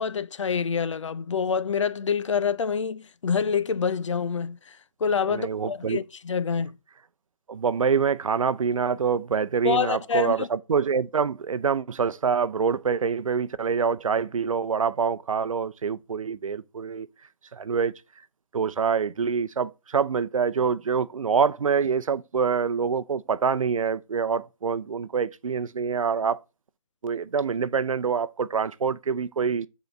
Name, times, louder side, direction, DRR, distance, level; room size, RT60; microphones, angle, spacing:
voice 1, 0.0-6.8 9.6-10.5, left 6 dB, 60° left, 0.7 m, -27 dB
voice 2, 5.3-6.0 7.5-17.1 17.5-17.9 18.5-26.4 27.0-29.7, right 6 dB, 75° right, 0.6 m, -25 dB
8.0 x 4.1 x 5.1 m
hypercardioid pair, 160°, 17 cm